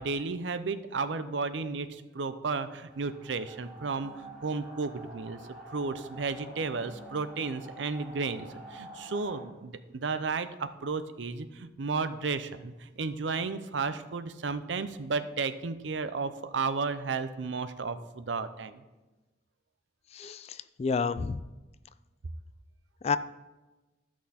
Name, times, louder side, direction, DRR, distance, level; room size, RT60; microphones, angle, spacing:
voice 1, 0.0-5.4 5.7-18.8, right 4 dB, 90° right, 12 dB, 0.6 m, -33 dB
sound 1, 2.8-9.4, right 1 dB, ahead, 3.0 m, -48 dB
voice 2, 20.1-21.4 23.0-23.2, left 5 dB, 35° left, 14 dB, 0.3 m, -30 dB
13.0 x 6.0 x 4.2 m, 1.1 s
head